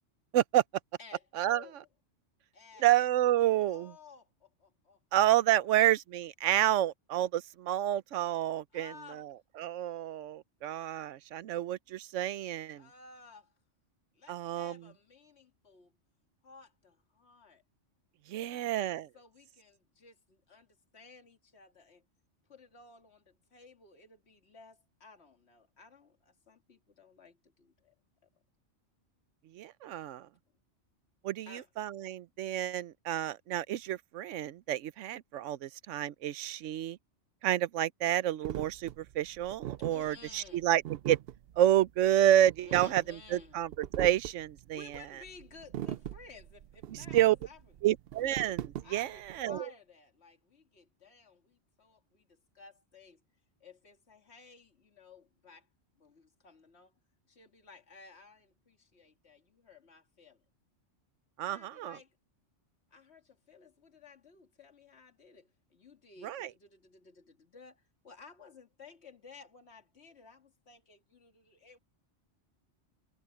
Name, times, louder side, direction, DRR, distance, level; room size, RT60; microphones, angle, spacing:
voice 1, 1.0-1.9 2.5-2.9 3.6-5.0 5.5-5.7 8.7-9.3 12.7-13.5 14.1-15.9 16.4-17.6 18.3-22.0 22.5-28.0 31.5-31.7 39.8-40.7 42.6-43.6 44.7-47.6 48.8-53.2 53.6-55.7 56.0-56.9 57.3-60.4 61.4-62.2 62.9-71.8, left 4 dB, 65° left, 2.4 m, -56 dB
voice 2, 2.8-3.9 5.1-12.9 14.3-14.8 18.3-19.1 29.5-30.3 31.2-37.0 37.4-41.2 41.6-43.7 44.0-45.0 46.9-47.4 47.8-49.7 61.4-62.0 66.2-66.5, right 12 dB, 90° right, 1.0 m, -29 dB
sound 1, 38.4-49.4, right 12 dB, 65° right, 0.7 m, -40 dB
omnidirectional pair, 1.2 m